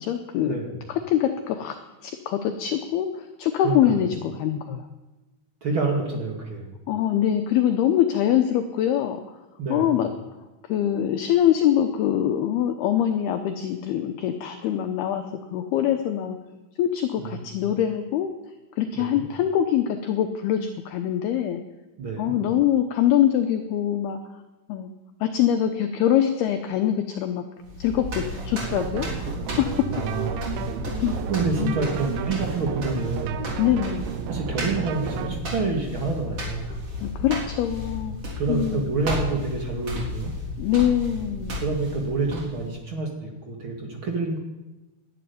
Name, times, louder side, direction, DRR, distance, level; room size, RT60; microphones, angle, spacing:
voice 1, 0.0-0.6 0.9-1.8 2.0-4.9 6.9-9.2 9.7-10.1 10.7-15.2 15.5-16.4 16.8-18.3 18.8-21.6 22.2-24.2 24.7-24.9 25.2-27.4 27.8-29.9 30.9-31.2 31.4-31.8 33.6-34.0 37.0-38.2 38.5-38.9 40.6-41.6, left 10 dB, 80° left, 7 dB, 2.2 m, -24 dB
voice 2, 3.6-3.9 5.6-6.7 9.6-9.9 17.2-17.6 18.9-19.2 22.0-22.3 29.9-31.0 31.3-33.5 34.3-36.7 38.4-40.3 41.6-44.4, right 3 dB, 65° right, 0 dB, 1.2 m, -28 dB
sound 1, 27.6-42.8, left 1 dB, 35° right, 3.8 m, -33 dB
sound 2, 28.7-35.4, right 10 dB, 80° right, 2.9 m, -33 dB
12.5 x 11.0 x 9.4 m, 1.1 s
omnidirectional pair, 5.7 m